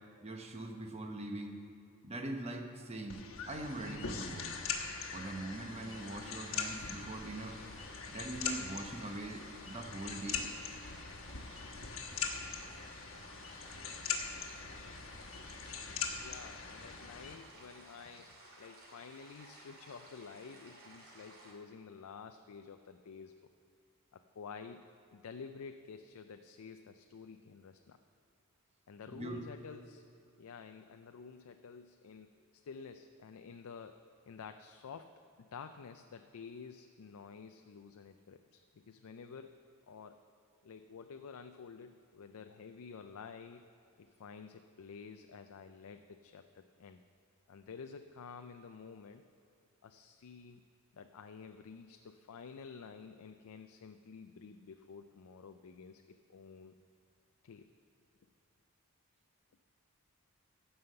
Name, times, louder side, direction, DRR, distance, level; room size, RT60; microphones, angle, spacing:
voice 1, 0.2-1.6 2.0-4.6 5.1-7.6 8.1-10.5 29.1-29.4, right 2 dB, 30° right, 4 dB, 1.0 m, -42 dB
sound 1, 3.1-17.3, left 6 dB, 65° left, 1.3 m, -42 dB
sound 2, 5.8-21.5, right 2 dB, 75° right, 2.6 m, -57 dB
voice 2, 16.1-23.4 24.1-28.0 28.9-30.0 30.4-34.0 34.3-35.1 35.5-39.6 39.9-40.2 40.6-43.6 44.0-47.0 47.5-49.2 49.8-50.6 50.9-56.7 57.4-57.7, left 5 dB, 80° left, 7 dB, 0.4 m, -50 dB
15.5 x 5.6 x 6.6 m, 2.6 s
head